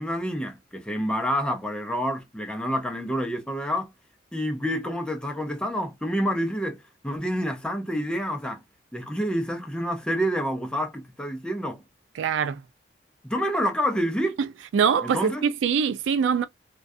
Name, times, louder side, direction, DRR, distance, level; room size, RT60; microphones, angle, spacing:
voice 1, 0.0-3.9 4.3-8.6 8.9-11.8 13.2-14.4 15.0-15.4, equal, 5° left, 0.5 m, -28 dB
voice 2, 12.2-12.6 14.7-16.5, right 7 dB, 85° right, 0.3 m, -23 dB
2.3 x 2.3 x 2.6 m
head